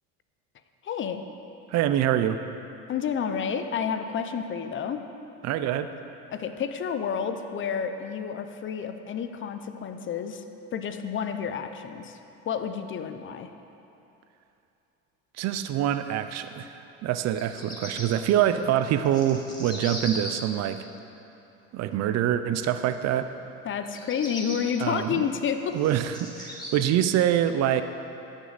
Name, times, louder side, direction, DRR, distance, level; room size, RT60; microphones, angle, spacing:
voice 1, 0.8-1.2 2.9-5.0 6.3-10.4 10.7-12.2 12.5-13.5 23.6-25.8, left 7 dB, 40° left, 8 dB, 0.6 m, -30 dB
voice 2, 1.7-2.4 5.4-5.9 15.4-20.9 21.7-23.3 24.8-25.2 25.7-27.8, right 11 dB, 55° right, 10 dB, 0.5 m, -25 dB
Bird vocalization bird call bird song, 17.2-18.1 18.8-20.3 23.8-24.6 25.3-26.7, left 1 dB, 15° left, 2.1 m, -38 dB
14.0 x 6.3 x 4.0 m, 2.9 s
supercardioid pair, 90°, 31 cm